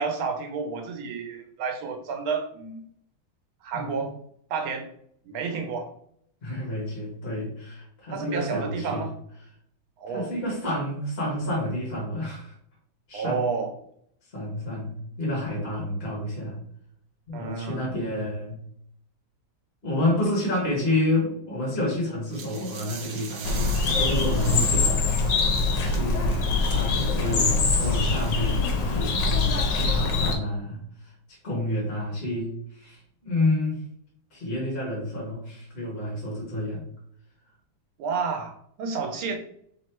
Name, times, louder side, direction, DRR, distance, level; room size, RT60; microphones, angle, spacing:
voice 1, 0.0-2.8 3.6-4.1 4.5-4.9 5.2-5.9 8.1-9.1 10.0-10.3 13.1-13.7 17.3-17.9 38.0-39.4, right 5 dB, 85° right, 5 dB, 1.7 m, -30 dB
voice 2, 3.7-4.0 6.4-9.1 10.1-12.5 13.1-13.5 14.3-16.6 17.3-18.6 19.8-26.4 26.7-33.8 34.3-36.8, left 1 dB, 30° left, -4 dB, 1.6 m, -29 dB
sound 1, 22.3-28.8, right 6 dB, 70° right, 1.4 m, -42 dB
Bird, 23.4-30.3, left 3 dB, 70° left, 1.4 m, -23 dB
3.8 x 3.1 x 4.4 m, 0.68 s
omnidirectional pair, 2.2 m